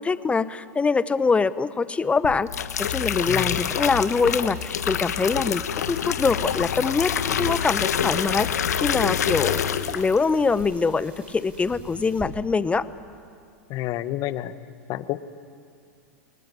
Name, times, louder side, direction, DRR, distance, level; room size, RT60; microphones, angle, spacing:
voice 1, 0.0-12.8, left 4 dB, 15° left, 16 dB, 0.9 m, -24 dB
sound 1, 2.2-10.2 10.5-10.9, left 8 dB, 80° left, 1.3 m, -26 dB
voice 2, 3.3-3.6 13.7-14.5 14.9-15.2, left 14 dB, 45° left, 13 dB, 1.2 m, -29 dB
sound 2, 5.4-12.3, right 3 dB, 15° right, 5.1 m, -47 dB
29.0 x 20.5 x 9.6 m, 2.4 s
hypercardioid pair, 105°, 9 cm